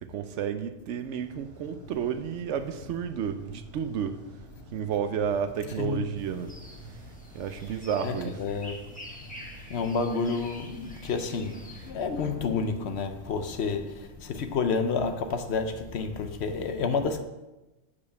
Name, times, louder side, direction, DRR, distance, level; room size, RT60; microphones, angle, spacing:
voice 1, 0.0-4.2 4.7-6.6 7.3-8.4, right 8 dB, 70° right, 0.9 m, -31 dB
sound 1, 1.0-16.0, right 3 dB, 15° right, 1.6 m, -50 dB
sound 2, 6.2-11.9, left 1 dB, 5° left, 1.2 m, -48 dB
voice 2, 8.0-8.7 9.7-17.2, left 5 dB, 60° left, 0.8 m, -30 dB
7.1 x 4.9 x 6.7 m
omnidirectional pair, 1.4 m